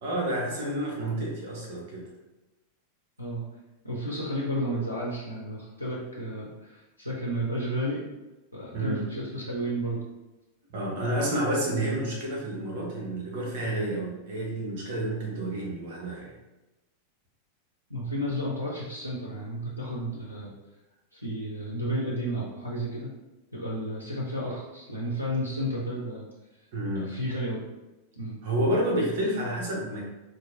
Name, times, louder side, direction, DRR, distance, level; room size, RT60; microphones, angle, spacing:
voice 1, 0.0-2.1 8.7-9.1 10.7-16.4 26.7-27.1 28.4-30.1, right 1 dB, 50° right, -2 dB, 0.9 m, -29 dB
voice 2, 3.8-8.0 8.5-10.0 17.9-20.5 21.1-23.1 23.5-26.3 27.0-27.6 28.2-28.3, equal, 90° right, -5 dB, 0.5 m, -32 dB
2.9 x 2.6 x 2.6 m, 1.0 s
figure-of-eight pair, 90°, 0 cm